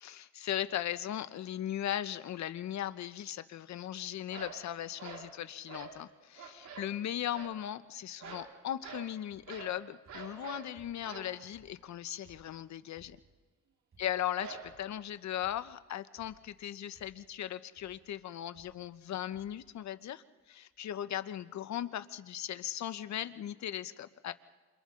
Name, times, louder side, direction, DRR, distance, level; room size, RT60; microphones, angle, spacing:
voice 1, 0.0-13.2 14.0-24.3, left 11 dB, 65° left, 13 dB, 1.0 m, -38 dB
sound 1, 4.3-4.6 5.0-5.3 5.7-6.0 6.3-6.9 7.3-7.6 8.2-8.5 8.8-9.1 9.5-9.8 10.1-10.7 11.0-11.3 14.4-15.0, right 6 dB, 75° right, 3.9 m, -46 dB
sound 2, 9.3-9.7 10.1-11.2 11.5-13.5 13.9-14.3 14.6-15.1 15.4-15.8 16.2-16.7 16.9-17.4 17.8-18.1 18.5-19.1 19.3-19.7 20.4-20.5 20.7-20.8, right 2 dB, 45° right, 6.5 m, -64 dB
28.0 x 28.0 x 3.9 m, 1.3 s
cardioid pair, 90°, 30 cm